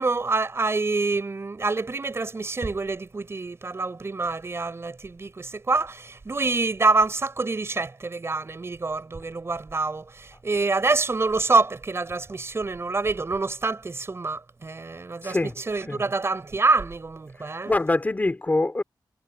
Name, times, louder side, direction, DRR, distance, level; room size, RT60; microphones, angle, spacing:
voice 1, 0.0-17.7, right 3 dB, 35° right, 6.2 m, -26 dB
voice 2, 15.2-15.5 15.9-16.0 17.7-18.8, left 2 dB, 20° left, 3.3 m, -24 dB
wide cardioid pair, 155°, 8 cm